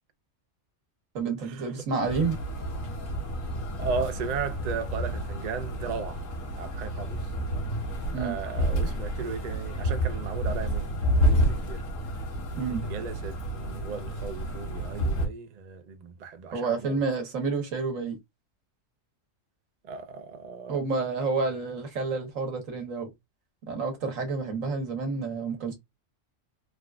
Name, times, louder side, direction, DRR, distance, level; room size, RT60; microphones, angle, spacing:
voice 1, 1.1-2.4 8.1-8.4 12.6-12.8 16.5-18.2 20.7-23.1 23.7-25.7, right 4 dB, 90° right, 1.4 m, -29 dB
sound 1, 2.1-15.3, equal, 80° left, 1.3 m, -30 dB
voice 2, 3.8-6.3 6.6-7.3 8.2-11.9 12.8-17.0 19.8-20.8, right 5 dB, 55° right, 0.5 m, -36 dB
3.4 x 2.4 x 2.3 m
omnidirectional pair, 1.3 m